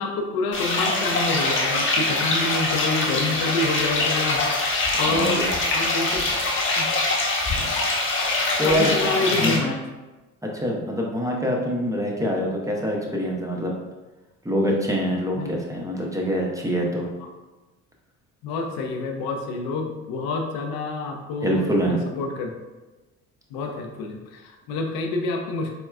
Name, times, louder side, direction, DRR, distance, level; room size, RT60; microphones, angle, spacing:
voice 1, 0.0-6.2 6.8-6.9 7.6-7.7 8.6-9.8 15.4-15.6 17.2-17.3 18.4-22.5 23.5-25.8, left 3 dB, 65° left, 3 dB, 0.5 m, -28 dB
sound 1, 0.5-9.6, left 2 dB, 30° left, 0.8 m, -23 dB
voice 2, 5.1-5.5 8.6-8.9 9.3-9.6 10.4-13.7 14.4-17.1 21.4-22.0, equal, 10° right, -1 dB, 0.6 m, -25 dB
4.1 x 2.2 x 2.3 m, 1.1 s
hypercardioid pair, 55°, 39 cm